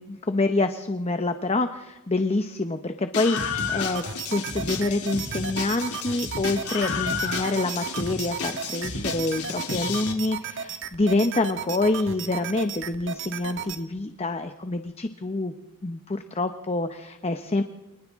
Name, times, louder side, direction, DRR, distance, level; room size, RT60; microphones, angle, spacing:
voice 1, 0.0-4.0 4.3-15.5 15.8-17.6, left 2 dB, 30° left, 7 dB, 0.9 m, -27 dB
Screaming, 3.1-10.1, left 5 dB, 85° left, 3.4 m, -31 dB
sound 1, 3.9-13.8, right 7 dB, 60° right, 1.4 m, -35 dB
29.5 x 25.0 x 3.7 m, 0.99 s
head